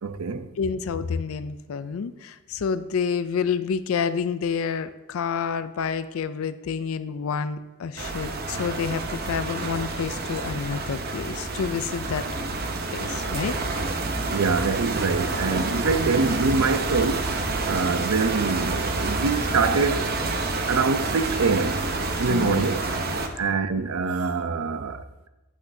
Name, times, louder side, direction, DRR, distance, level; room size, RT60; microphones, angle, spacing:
voice 1, 0.0-0.5 14.3-17.3 17.6-20.1 20.7-21.8 22.2-22.8 23.4-25.0, right 4 dB, 80° right, 0.5 m, -24 dB
voice 2, 0.6-12.3 12.9-13.5 16.0-16.3 22.3-22.6, left 6 dB, 70° left, 0.4 m, -29 dB
sound 1, 8.0-23.3, right 3 dB, 45° right, 0.7 m, -28 dB
8.6 x 8.2 x 2.7 m
head